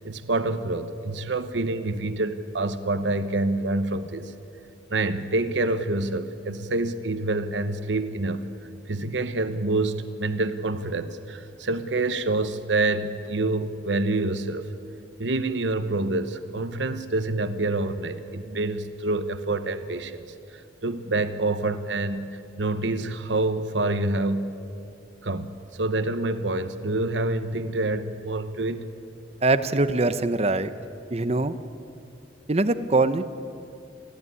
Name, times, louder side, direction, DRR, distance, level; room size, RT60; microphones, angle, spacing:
voice 1, 0.0-4.3 4.9-8.4 8.9-14.6 15.2-20.2 20.5-24.5 25.2-28.9, right 2 dB, 75° right, 10 dB, 1.0 m, -27 dB
voice 2, 29.4-30.7 31.1-31.6 32.5-33.2, right 2 dB, 35° right, 12 dB, 0.8 m, -22 dB
23.5 x 15.0 x 9.7 m, 2.6 s
head